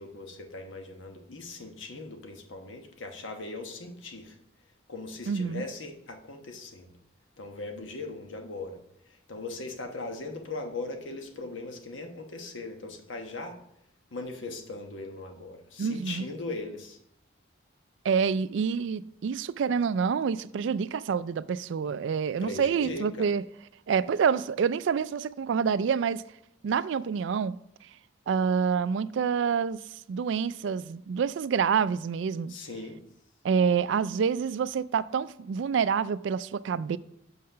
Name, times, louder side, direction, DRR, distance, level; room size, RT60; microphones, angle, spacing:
voice 1, 0.0-4.4 4.9-6.9 7.4-8.8 9.1-13.6 14.1-17.0 22.4-23.3 32.5-33.0, left 2 dB, 85° left, 1.2 m, -39 dB
voice 2, 5.3-5.6 15.8-16.3 18.0-23.4 23.9-26.2 26.6-27.6 28.3-29.8 30.1-32.5 33.4-37.0, right 6 dB, 75° right, 0.3 m, -27 dB
6.4 x 5.7 x 5.6 m
head